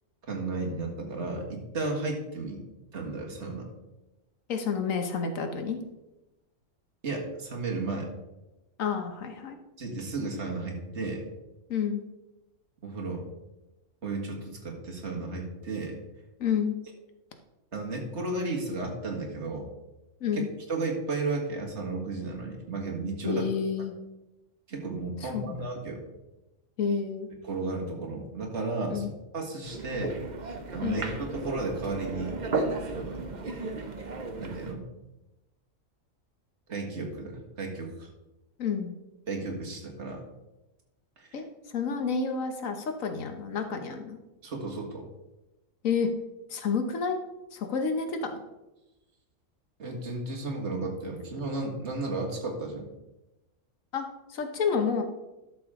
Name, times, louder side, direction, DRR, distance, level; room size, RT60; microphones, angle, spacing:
voice 1, 0.3-2.6 2.9-3.7 7.0-8.1 9.8-11.2 12.8-13.3 14.0-16.0 17.7-19.7 20.3-23.5 24.7-26.1 27.4-29.1 29.3-30.2 30.7-32.4 32.9-33.3 34.3-34.8 36.7-38.1 39.3-40.2 41.2-41.4 44.4-45.1 49.8-52.9, right 3 dB, 60° right, 0 dB, 2.0 m, -33 dB
voice 2, 4.5-5.8 8.8-9.6 11.7-12.0 16.4-16.7 20.2-20.5 23.2-23.9 25.3-25.6 26.8-27.3 28.9-29.1 30.8-31.0 38.6-38.9 41.3-41.4 41.7-44.2 45.8-46.1 46.5-47.2 47.5-48.3 53.9-54.1 54.3-55.0, left 6 dB, 90° left, 6 dB, 1.4 m, -29 dB
sound 1, 29.6-34.7, right 3 dB, 40° right, 0.9 m, -34 dB
11.5 x 6.6 x 3.7 m, 1.0 s
omnidirectional pair, 1.3 m